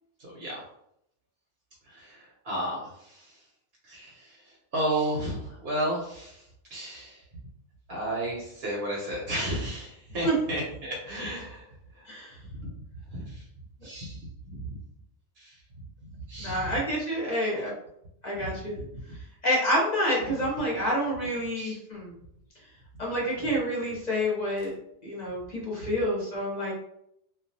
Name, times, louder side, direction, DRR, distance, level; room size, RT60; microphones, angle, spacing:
voice 1, 0.2-0.6 1.8-3.4 3.8-7.2 7.9-12.1 12.5-12.8 13.1-13.5 13.8-14.8 15.4-16.8 18.3-19.0 21.5-21.8 23.4-23.5 25.8-25.9, right 1 dB, 60° right, -3 dB, 0.9 m, -34 dB
voice 2, 16.4-17.7 18.2-18.8 19.4-22.2 23.0-24.7 25.0-26.7, equal, 40° left, -5 dB, 0.8 m, -28 dB
2.3 x 2.3 x 2.6 m, 0.75 s
omnidirectional pair, 1.2 m